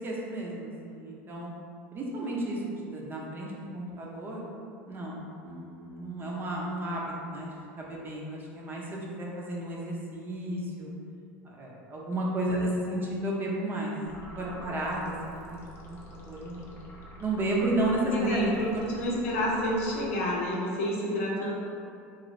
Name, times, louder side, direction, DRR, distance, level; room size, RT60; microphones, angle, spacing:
voice 1, 0.0-1.5 1.9-4.4 4.9-10.9 11.4-13.9 14.3-15.6 15.9-16.7 17.2-18.5 19.2-19.3, right 1 dB, 30° right, -3 dB, 0.6 m, -33 dB
sound 1, 14.0-20.5, equal, 35° left, 0.6 m, -47 dB
voice 2, 18.1-21.5, equal, 90° left, -4 dB, 0.7 m, -29 dB
2.6 x 2.5 x 3.1 m, 2.5 s
supercardioid pair, 105°, 7 cm